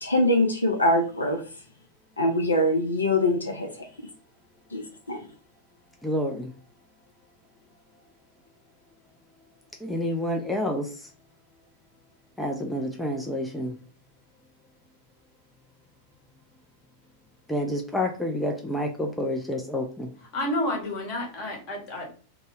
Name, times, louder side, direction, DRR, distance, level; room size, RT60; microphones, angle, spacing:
voice 1, 0.0-1.4 2.2-3.9 4.7-5.2, left 1 dB, 80° left, 2 dB, 0.4 m, -23 dB
voice 2, 6.0-6.5 9.8-10.9 12.4-13.8 17.5-20.1, left 1 dB, 5° left, 1 dB, 0.3 m, -28 dB
voice 3, 20.3-22.1, left 1 dB, 40° left, 0 dB, 0.9 m, -30 dB
2.0 x 2.0 x 3.0 m, 0.38 s
figure-of-eight pair, 90°, 0 cm